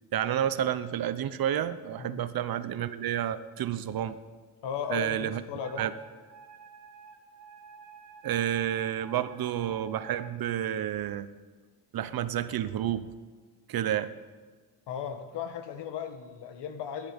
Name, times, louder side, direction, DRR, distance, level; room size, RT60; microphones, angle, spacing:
voice 1, 0.1-4.2 4.9-5.4 5.8-5.9 8.2-11.3 11.9-13.1 13.7-14.1, right 10 dB, 60° right, 13 dB, 0.8 m, -30 dB
voice 2, 4.6-5.8 14.9-17.1, left 7 dB, 85° left, 7 dB, 1.5 m, -36 dB
Wind instrument woodwind instrument, 5.6-10.3, right 5 dB, 40° right, 1.8 m, -50 dB
19.5 x 10.0 x 5.3 m, 1.4 s
cardioid pair, 130°, 41 cm